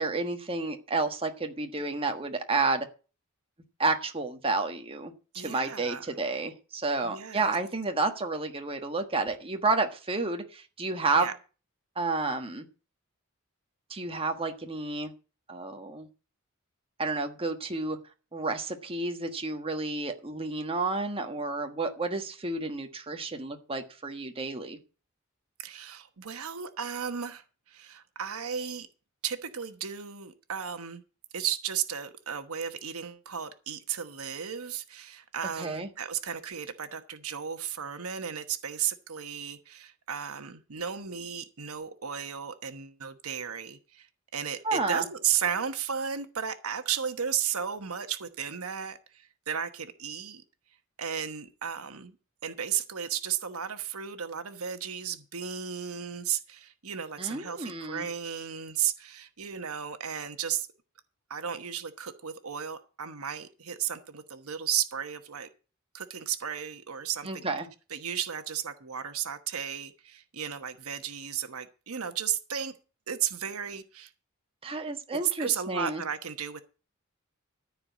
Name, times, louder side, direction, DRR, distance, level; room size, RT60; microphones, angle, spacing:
voice 1, 0.0-2.9 3.8-11.3 11.9-12.7 13.9-15.1 15.5-16.1 17.0-18.0 18.3-24.8 35.6-35.9 44.6-45.0 57.2-58.1 67.3-67.7 74.6-76.0, right 3 dB, 25° right, 1.4 m, -30 dB
voice 2, 5.3-6.1 7.0-7.6 11.2-11.3 25.6-28.9 29.2-31.0 31.3-44.1 44.3-50.4 51.0-52.2 52.4-60.7 61.3-65.5 65.9-67.5 67.9-72.7 73.1-74.1 75.1-76.6, right 8 dB, 80° right, 1.1 m, -34 dB
14.0 x 4.7 x 8.1 m
head